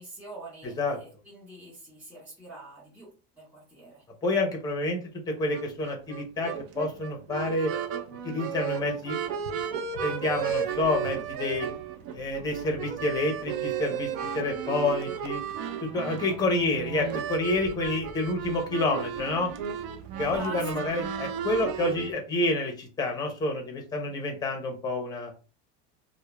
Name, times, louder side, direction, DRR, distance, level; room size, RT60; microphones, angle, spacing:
voice 1, 0.0-3.1 3.3-4.0 20.3-20.9, right 2 dB, 5° right, -9 dB, 1.4 m, -44 dB
voice 2, 4.2-5.0 5.3-7.7 8.2-9.2 10.0-11.7 12.1-14.1 14.3-15.4 15.8-19.5 20.2-25.3, left 2 dB, 10° left, 2 dB, 0.5 m, -28 dB
sound 1, 5.5-22.1, right 8 dB, 80° right, 0.5 m, -34 dB
2.8 x 2.0 x 2.2 m, 0.34 s
cardioid pair, 155°, 31 cm